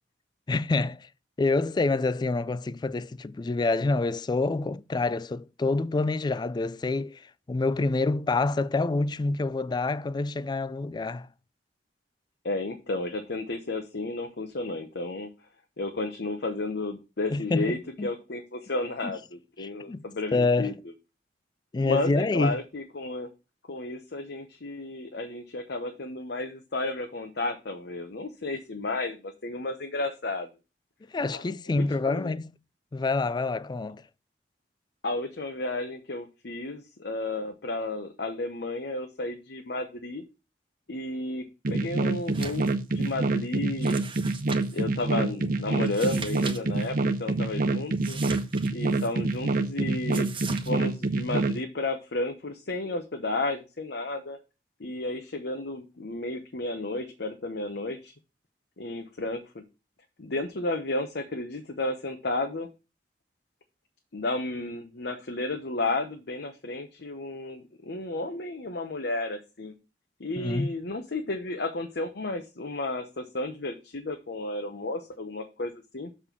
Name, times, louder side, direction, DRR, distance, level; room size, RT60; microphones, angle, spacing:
voice 1, 0.5-1.1 1.4-11.3 17.3-18.1 19.0-19.2 19.6-20.8 21.7-22.5 31.1-32.5 32.9-34.0 70.4-70.7, left 3 dB, 25° left, 0.3 m, -27 dB
voice 2, 12.4-15.3 15.8-20.7 21.8-23.3 23.7-30.5 31.3-31.4 31.7-32.4 35.0-40.2 40.9-44.0 44.4-48.2 48.7-50.3 50.7-54.4 54.8-58.1 58.8-59.6 60.2-62.7 64.1-69.7 70.2-76.1, left 2 dB, 65° left, 1.0 m, -32 dB
sound 1, 41.6-51.6, right 3 dB, 55° right, 0.8 m, -26 dB
sound 2, 42.2-42.7 43.0-43.1 43.8-44.8 45.8-46.6 46.8-46.9 48.0-49.1 50.1-50.7, right 4 dB, 30° right, 1.1 m, -39 dB
7.1 x 4.3 x 5.8 m
head